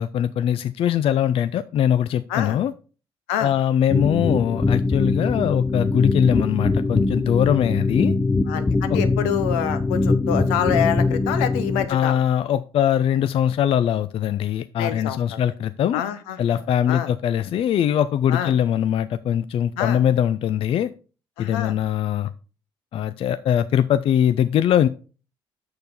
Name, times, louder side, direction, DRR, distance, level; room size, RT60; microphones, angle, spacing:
voice 1, 0.0-2.7 3.4-8.1 8.9-9.0 11.9-16.0 16.4-20.9 21.4-22.3 22.9-24.9, left 10 dB, 50° left, 14 dB, 0.4 m, -21 dB
sound 1, 3.9-11.8, left 3 dB, 15° left, 0.7 m, -22 dB
voice 2, 8.5-12.2 14.8-15.4 15.9-16.6 16.9-17.1 18.3-18.5 19.8-20.0 21.4-21.7, left 9 dB, 75° left, 12 dB, 0.7 m, -26 dB
6.6 x 6.6 x 4.1 m, 0.36 s
hypercardioid pair, 50°, 12 cm